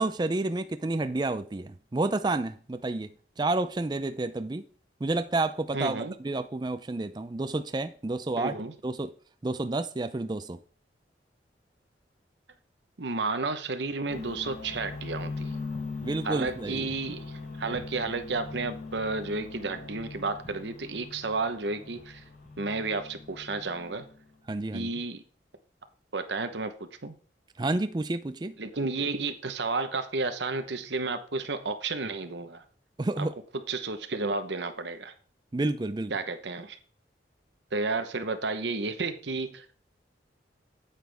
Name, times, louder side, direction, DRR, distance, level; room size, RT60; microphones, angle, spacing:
voice 1, 0.0-3.1 3.4-4.6 5.0-8.5 8.8-9.1 9.4-10.6 16.0-16.9 24.5-24.9 27.6-28.6 33.0-33.3 35.5-36.1, right 2 dB, 25° right, 0.4 m, -30 dB
voice 2, 5.7-6.1 8.4-8.7 13.0-15.6 16.2-22.2 22.6-24.0 24.7-25.2 26.1-26.7 27.0-27.1 28.6-32.6 33.2-33.3 33.5-35.1 36.1-36.8 37.7-39.7, right 3 dB, 75° right, 1.0 m, -32 dB
sound 1, 14.1-24.3, left 3 dB, 45° left, 3.7 m, -41 dB
9.1 x 8.4 x 3.5 m
head